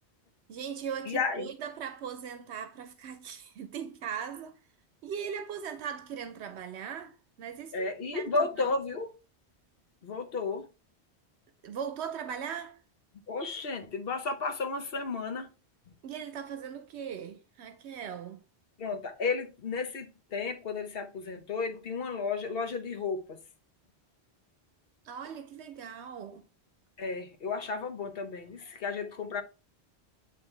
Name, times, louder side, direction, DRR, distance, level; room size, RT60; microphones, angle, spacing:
voice 1, 0.5-4.6 5.0-8.8 11.6-12.8 16.0-18.4 25.0-26.5, right 7 dB, 80° right, 0.9 m, -39 dB
voice 2, 1.1-1.5 7.7-9.1 10.0-10.7 13.3-15.5 18.8-23.4 27.0-29.4, left 4 dB, 60° left, 1.1 m, -33 dB
8.9 x 3.3 x 3.2 m
omnidirectional pair, 1.1 m